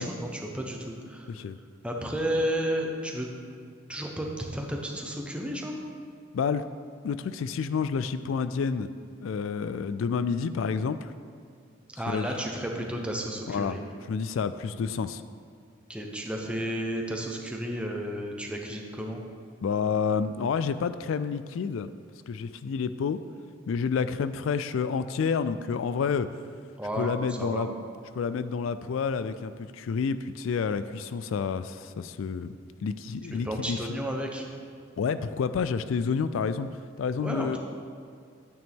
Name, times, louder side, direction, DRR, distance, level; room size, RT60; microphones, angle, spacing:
voice 1, 0.0-1.3 1.8-3.3 3.9-5.7 11.9-13.8 15.9-19.2 26.8-27.1 27.4-27.7 33.3-34.4 37.2-37.6, equal, 5° right, 0 dB, 1.0 m, -32 dB
voice 2, 6.3-6.7 7.0-8.9 9.2-11.1 12.1-12.3 13.5-13.8 14.1-15.2 19.6-21.9 22.3-23.2 23.7-26.3 27.0-27.7 28.2-32.5 32.8-33.8 35.0-36.7 37.0-37.6, left 5 dB, 70° left, 13 dB, 0.3 m, -29 dB
12.0 x 9.0 x 3.6 m, 2.3 s
head